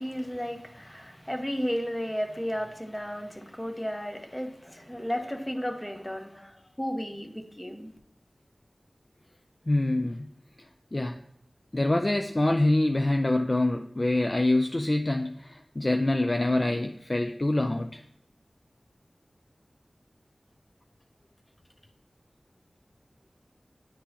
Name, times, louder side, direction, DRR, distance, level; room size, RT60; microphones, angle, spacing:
voice 1, 0.0-7.9, equal, 15° left, 1.0 m, -33 dB
voice 2, 9.7-10.3 10.9-11.2 11.7-18.0, left 2 dB, 40° left, 0.4 m, -25 dB
10.0 x 3.8 x 2.9 m
wide cardioid pair, 50°, 0 cm